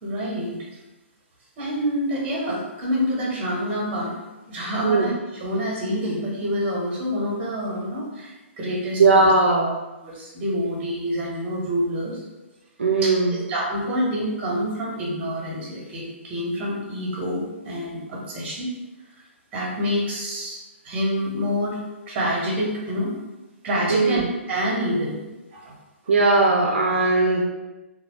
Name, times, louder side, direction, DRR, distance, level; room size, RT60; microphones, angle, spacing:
voice 1, 0.0-0.6 1.6-4.1 4.5-9.3 9.6-9.7 10.0-12.2 13.0-18.7 19.1-19.2 19.5-20.6 20.8-21.8 22.1-23.1 23.6-25.2 25.5-25.7, equal, 25° right, -4 dB, 1.3 m, -27 dB
voice 2, 9.0-9.7 12.8-13.3 23.9-24.2 26.1-27.4, right 3 dB, 65° right, -1 dB, 0.5 m, -18 dB
3.8 x 2.7 x 3.1 m, 1.1 s
figure-of-eight pair, 120°, 7 cm